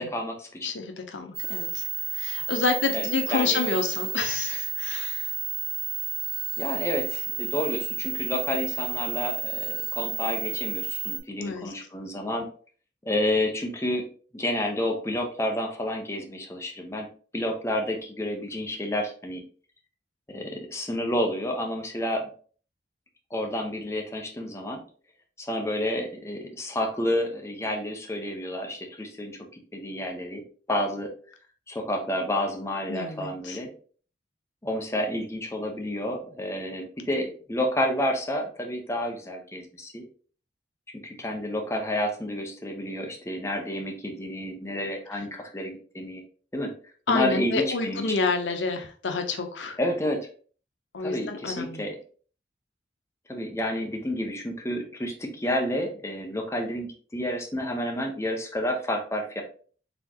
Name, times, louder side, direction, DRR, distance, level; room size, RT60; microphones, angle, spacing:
voice 1, 0.0-0.7 2.9-3.6 6.6-12.5 13.0-14.1 14.3-17.1 17.3-19.4 20.3-22.3 23.3-24.8 25.4-29.4 29.7-30.4 30.7-31.1 31.7-33.7 34.6-40.0 41.0-46.2 46.5-46.7 47.1-48.2 49.8-50.3 51.0-52.0 53.3-59.4, left 1 dB, 15° left, 1 dB, 0.8 m, -30 dB
voice 2, 0.6-1.8 2.1-5.3 11.4-11.7 32.9-33.6 47.1-49.8 50.9-51.8, left 4 dB, 90° left, 5 dB, 0.7 m, -29 dB
sound 1, 1.3-11.2, right 8 dB, 60° right, 2.0 m, -31 dB
4.2 x 3.6 x 2.9 m, 0.43 s
head